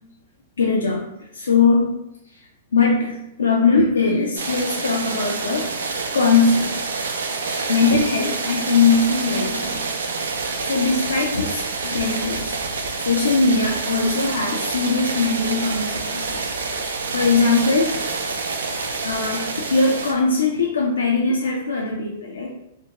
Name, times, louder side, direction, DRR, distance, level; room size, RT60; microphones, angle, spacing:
voice 1, 0.6-1.1 1.3-1.9 2.7-6.8 7.4-9.8 10.6-12.6 13.1-16.5 17.1-18.0 19.0-22.5, left 4 dB, 85° left, -2 dB, 0.4 m, -20 dB
sound 1, 4.4-20.1, right 4 dB, 80° right, 0.3 m, -27 dB
2.4 x 2.1 x 2.8 m, 0.82 s
hypercardioid pair, 115°, 0 cm